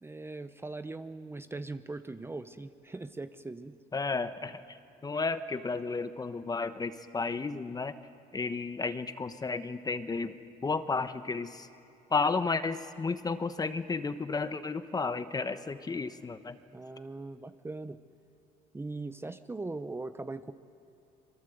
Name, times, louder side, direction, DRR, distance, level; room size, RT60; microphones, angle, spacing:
voice 1, 0.0-3.8 16.7-18.0 18.7-20.5, right 3 dB, 15° right, 10 dB, 0.7 m, -40 dB
voice 2, 3.9-4.6 5.0-7.9 8.3-11.7 12.1-16.6, left 4 dB, 20° left, 11 dB, 1.0 m, -32 dB
25.0 x 23.0 x 7.9 m, 2.7 s
cardioid pair, 110°, 17 cm